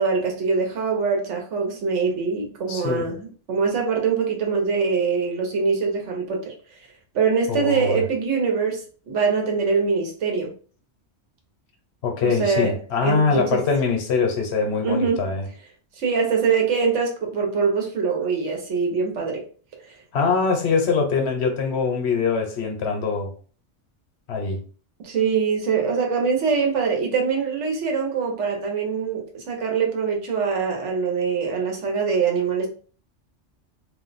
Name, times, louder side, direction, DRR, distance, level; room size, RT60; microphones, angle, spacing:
voice 1, 0.0-6.5 7.1-10.5 12.2-12.8 13.0-13.6 14.8-15.3 16.0-19.5 19.8-19.9 25.0-32.7, right 5 dB, 75° right, 1.2 m, -23 dB
voice 2, 2.7-3.1 7.5-8.0 12.0-15.4 20.1-23.3 24.3-24.6, left 4 dB, 65° left, 1.0 m, -23 dB
2.6 x 2.2 x 3.9 m
omnidirectional pair, 1.2 m